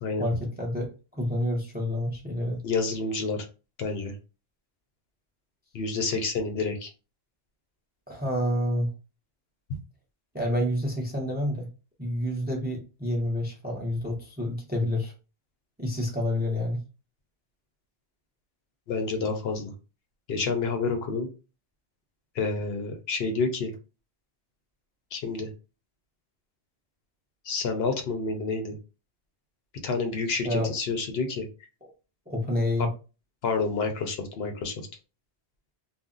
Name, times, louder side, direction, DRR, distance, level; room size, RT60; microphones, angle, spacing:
voice 1, 0.2-2.6 8.1-8.9 10.3-11.7 12.0-15.1 15.8-16.8 30.4-30.7 32.3-32.9, left 1 dB, 15° right, 0 dB, 0.4 m, -28 dB
voice 2, 2.6-3.5 3.8-4.1 5.7-6.9 18.9-19.7 20.3-21.3 22.3-23.7 25.1-25.5 27.4-28.8 29.8-31.5 33.4-34.9, left 4 dB, 70° left, 6 dB, 0.8 m, -29 dB
2.5 x 2.0 x 3.7 m, 0.32 s
omnidirectional pair, 1.1 m